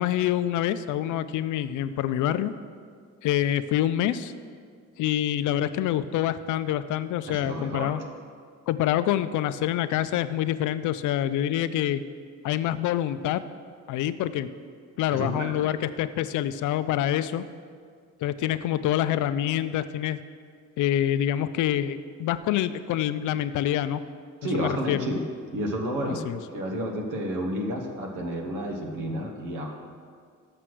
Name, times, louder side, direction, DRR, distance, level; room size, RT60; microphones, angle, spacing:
voice 1, 0.0-2.5 3.2-4.3 5.0-8.0 8.7-12.0 12.4-13.4 13.9-14.5 15.0-17.4 18.2-20.2 20.8-24.0 24.5-25.1 26.1-26.4, left 11 dB, 80° left, 13 dB, 0.4 m, -26 dB
voice 2, 7.3-8.0 15.1-15.6 24.4-25.2 25.5-29.8, equal, 90° right, 2 dB, 1.2 m, -31 dB
6.8 x 6.2 x 6.1 m, 2.1 s
cardioid pair, 90°, 30 cm